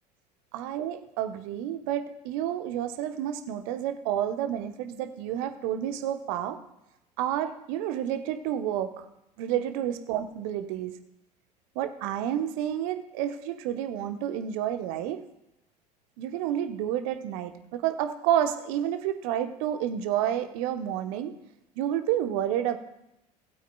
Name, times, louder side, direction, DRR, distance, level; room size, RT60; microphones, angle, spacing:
voice 1, 0.5-6.6 7.2-9.0 9.4-10.9 11.7-15.2 16.2-21.3 21.8-22.8, right 10 dB, 55° right, 8 dB, 1.1 m, -30 dB
19.5 x 8.5 x 2.3 m, 0.86 s
figure-of-eight pair, 70°, 21 cm